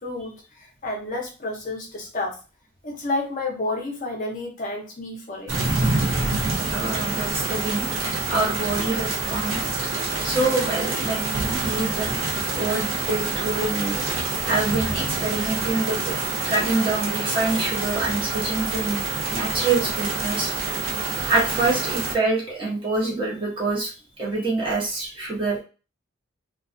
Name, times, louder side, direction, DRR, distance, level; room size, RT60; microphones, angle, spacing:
voice 1, 0.0-2.4 2.8-5.6 20.8-20.9, left 2 dB, 35° left, -1 dB, 0.6 m, -30 dB
sound 1, 5.5-22.1, right 3 dB, 70° right, 0.5 m, -27 dB
voice 2, 6.7-7.8 8.3-9.7 10.2-12.2 12.5-14.0 14.5-16.1 16.4-19.0 19.3-20.5 21.3-23.9 24.2-25.6, right 3 dB, 25° right, -5 dB, 0.7 m, -25 dB
2.3 x 2.2 x 2.5 m, 0.33 s
head